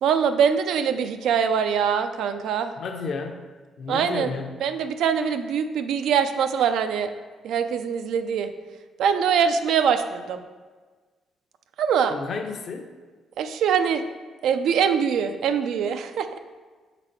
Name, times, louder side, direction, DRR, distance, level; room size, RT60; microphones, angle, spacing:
voice 1, 0.0-2.7 3.9-4.3 4.6-7.1 7.4-8.5 9.0-10.4 11.8-12.1 13.4-14.0 14.4-16.3, right 7 dB, 80° right, 8 dB, 0.4 m, -23 dB
voice 2, 2.8-3.4 3.8-4.5 12.1-12.9, left 4 dB, 60° left, 5 dB, 0.6 m, -32 dB
5.7 x 4.0 x 4.4 m, 1.4 s
cardioid pair, 90°, 0 cm